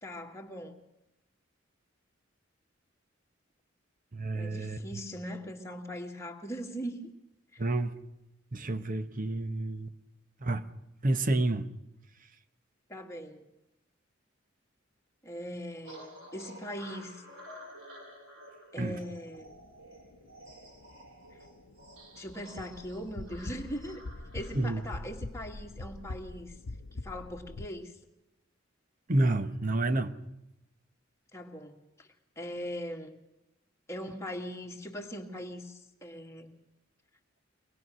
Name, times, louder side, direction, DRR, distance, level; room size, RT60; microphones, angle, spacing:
voice 1, 0.0-0.8 4.3-7.1 7.5-7.6 12.9-13.5 15.2-17.2 18.7-19.5 22.2-24.0 24.3-26.6 26.9-27.9 31.3-32.1 32.4-33.2 33.9-36.5, equal, 15° left, 1 dB, 1.9 m, -40 dB
voice 2, 4.1-4.8 7.6-7.9 8.5-9.9 10.4-10.7 11.0-11.7 18.8-19.0 24.5-24.8 29.1-30.2, right 2 dB, 40° right, 11 dB, 1.0 m, -29 dB
sound 1, 15.8-25.0, equal, 75° right, 6.3 m, -51 dB
sound 2, 19.4-27.7, left 2 dB, 75° left, 0.7 m, -44 dB
24.0 x 20.0 x 6.3 m, 0.91 s
head